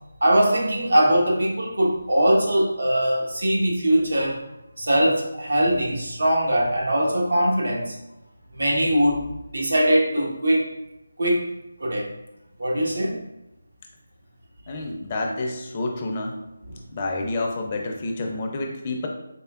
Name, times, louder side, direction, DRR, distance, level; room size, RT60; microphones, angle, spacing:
voice 1, 0.2-4.4 4.8-7.9 8.5-10.7 11.2-11.5 11.8-12.1 12.6-13.1, right 1 dB, 80° right, -2 dB, 1.1 m, -21 dB
voice 2, 14.7-16.3 16.9-19.1, left 2 dB, 25° left, 2 dB, 0.4 m, -29 dB
4.2 x 3.3 x 2.3 m, 0.91 s
figure-of-eight pair, 170°, 0 cm